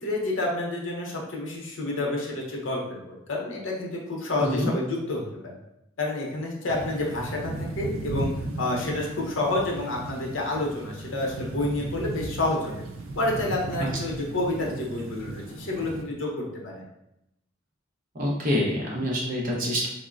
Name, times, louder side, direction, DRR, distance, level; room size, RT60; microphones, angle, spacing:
voice 1, 0.0-5.6 6.0-8.3 8.6-12.8 13.1-16.3 16.6-16.9, left 2 dB, 70° left, -2 dB, 0.7 m, -29 dB
voice 2, 4.4-4.7 13.8-13.9 18.1-19.9, equal, 40° right, -4 dB, 0.7 m, -26 dB
sound 1, 6.7-16.0, right 2 dB, 75° right, 0.4 m, -36 dB
3.7 x 2.1 x 2.4 m, 0.85 s
head